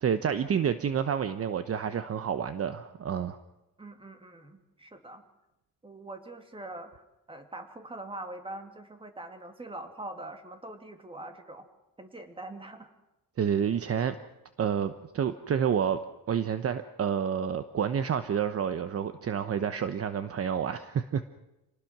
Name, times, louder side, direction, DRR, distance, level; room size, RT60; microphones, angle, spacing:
voice 1, 0.0-3.4 13.4-14.2 14.6-16.0 16.3-21.4, right 8 dB, 45° right, 11 dB, 1.0 m, -29 dB
voice 2, 3.8-5.2 5.8-11.7 12.0-12.9, right 2 dB, 15° right, 6 dB, 2.7 m, -43 dB
28.0 x 19.5 x 6.2 m, 0.94 s
cardioid pair, 125°, 34 cm